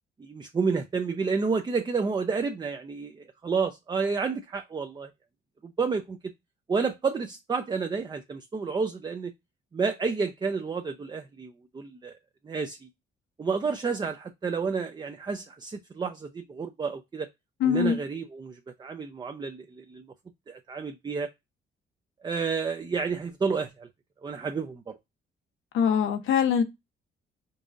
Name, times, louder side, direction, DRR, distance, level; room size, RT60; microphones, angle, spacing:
voice 1, 0.2-5.1 5.6-6.2 6.7-9.3 9.7-12.1 12.4-12.9 13.4-17.3 17.6-20.1 20.5-21.3 22.2-23.9 24.2-25.0, right 5 dB, 20° right, 0.4 m, -30 dB
voice 2, 17.6-18.0 25.7-26.6, left 7 dB, 80° left, 0.9 m, -23 dB
5.3 x 2.4 x 2.5 m
cardioid pair, 90°, 20 cm